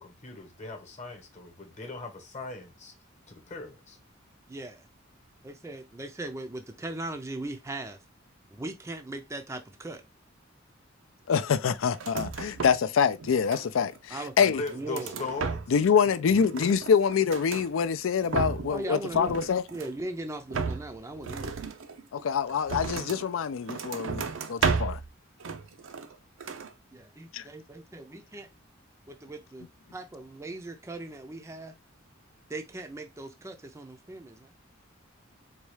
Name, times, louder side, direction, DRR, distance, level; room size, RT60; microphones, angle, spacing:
voice 1, 0.0-2.9 3.3-4.0 13.4-13.5 14.5-15.7, left 3 dB, 35° left, 1.0 m, -39 dB
voice 2, 4.5-4.8 5.4-8.0 8.5-10.0 14.1-15.2 18.7-19.4 19.7-21.6 26.9-28.5 29.1-31.7 32.5-34.5, right 2 dB, 15° right, 0.4 m, -39 dB
voice 3, 11.3-14.6 15.7-19.6 22.2-24.2 24.5-25.0 27.3-27.4, left 6 dB, 75° left, 0.4 m, -25 dB
sound 1, 11.9-12.9 13.2-14.0 14.5-15.9 16.2-17.7 18.1-18.8 19.1-20.0 20.5-23.3 23.7-25.1 25.4-26.2 26.4-26.7, right 5 dB, 70° right, 0.5 m, -34 dB
4.1 x 2.3 x 3.2 m
head